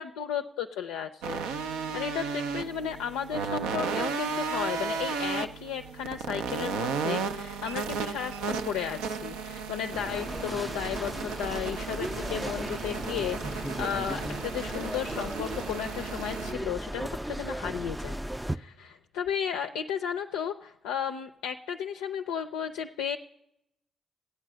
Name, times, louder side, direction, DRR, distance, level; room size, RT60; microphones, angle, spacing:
voice 1, 0.0-1.4 1.9-23.2, left 8 dB, 80° left, 5 dB, 0.4 m, -34 dB
sound 1, 1.2-16.5, right 5 dB, 80° right, 0.5 m, -34 dB
sound 2, 9.9-18.6, right 1 dB, 10° right, 0.4 m, -36 dB
15.0 x 9.0 x 6.1 m, 0.82 s
hypercardioid pair, 40°, 0 cm